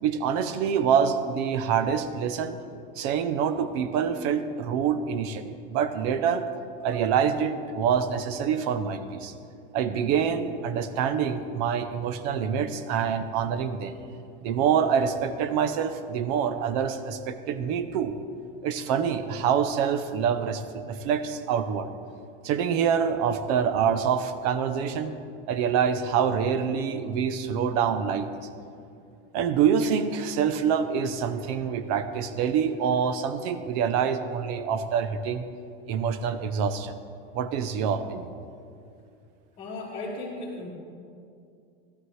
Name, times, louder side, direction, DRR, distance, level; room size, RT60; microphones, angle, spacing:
voice 1, 0.0-2.6 3.0-6.4 6.8-9.3 9.7-13.9 14.4-18.2 18.6-21.9 22.4-25.2 25.5-28.5 29.3-35.5 35.9-36.9 37.3-38.3, right 7 dB, 40° right, 11 dB, 0.7 m, -26 dB
voice 2, 39.6-40.7, left 2 dB, 25° left, -9 dB, 1.9 m, -35 dB
15.0 x 13.0 x 3.2 m, 2.5 s
supercardioid pair, 165°, 29 cm